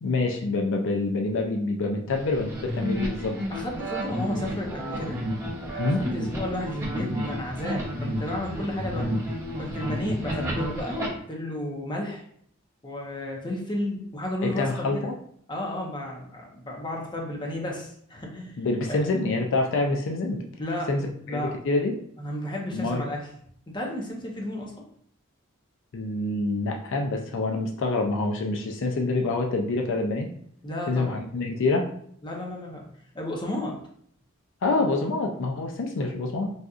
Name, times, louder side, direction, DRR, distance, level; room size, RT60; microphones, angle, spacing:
voice 1, 0.0-3.3 5.8-6.0 14.4-15.1 18.6-20.4 20.9-21.0 21.3-21.4 21.6-21.9 22.7-23.0 25.9-30.3 30.9-31.9 34.6-36.5, left 2 dB, 60° left, 2 dB, 0.4 m, -26 dB
sound 1, 2.1-11.1, equal, 15° right, 0.7 m, -31 dB
voice 2, 3.5-5.2 5.7-9.3 9.6-12.2 12.8-15.1 15.5-18.6 18.9-19.0 20.6-20.9 21.3-21.6 22.2-23.2 23.7-24.7 30.6-31.2 32.2-32.8 33.1-33.8, left 1 dB, 20° left, 0 dB, 0.6 m, -33 dB
4.0 x 2.4 x 2.4 m, 0.64 s
head